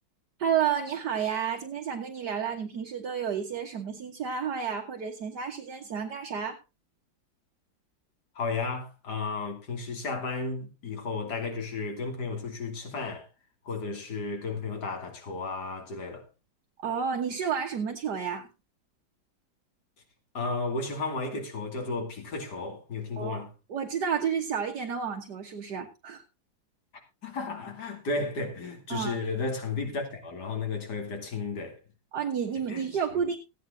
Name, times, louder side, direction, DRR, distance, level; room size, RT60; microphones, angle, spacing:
voice 1, 0.4-6.6 16.8-18.5 23.2-23.4 23.7-26.2 28.9-29.2 32.1-33.4, right 7 dB, 60° right, 1.8 m, -31 dB
voice 2, 8.3-13.3 13.6-16.2 20.3-23.5 27.2-31.8 32.7-32.8 33.1-33.2, left 3 dB, 55° left, 3.0 m, -33 dB
16.0 x 9.3 x 3.8 m
omnidirectional pair, 2.1 m